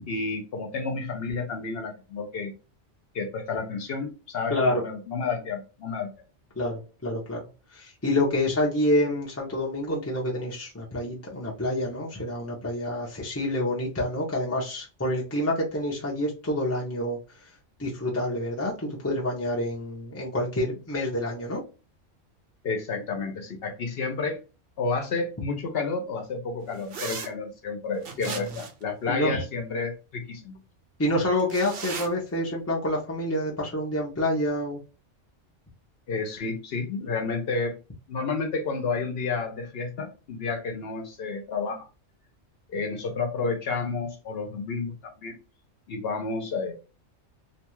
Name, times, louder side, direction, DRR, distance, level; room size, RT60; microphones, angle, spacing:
voice 1, 0.1-2.5 3.1-6.1 22.6-24.4 24.8-30.6 36.1-37.8 38.1-41.9 42.7-45.4 45.9-46.8, left 4 dB, 60° left, 5 dB, 0.8 m, -31 dB
voice 2, 4.5-4.8 6.6-7.4 7.7-17.2 17.8-21.6 28.2-28.5 29.1-29.4 31.0-34.8, left 1 dB, 20° left, -3 dB, 0.4 m, -27 dB
sound 1, 26.9-27.3 28.0-28.8 31.4-32.1, right 5 dB, 60° right, 0.7 m, -36 dB
2.6 x 2.3 x 2.9 m, 0.32 s
omnidirectional pair, 1.2 m